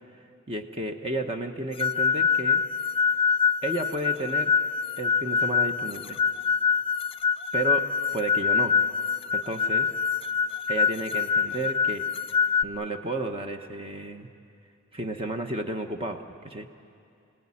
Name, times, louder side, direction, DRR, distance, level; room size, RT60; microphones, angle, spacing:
voice 1, 0.5-2.6 3.6-4.5 5.0-6.2 7.5-7.8 8.1-8.7 9.3-9.9 10.7-12.0 12.6-14.3 14.9-16.7, right 2 dB, 25° right, 5 dB, 1.1 m, -32 dB
sound 1, 1.8-12.6, left 6 dB, 25° left, 0.5 m, -25 dB
26.5 x 17.5 x 9.9 m, 2.5 s
head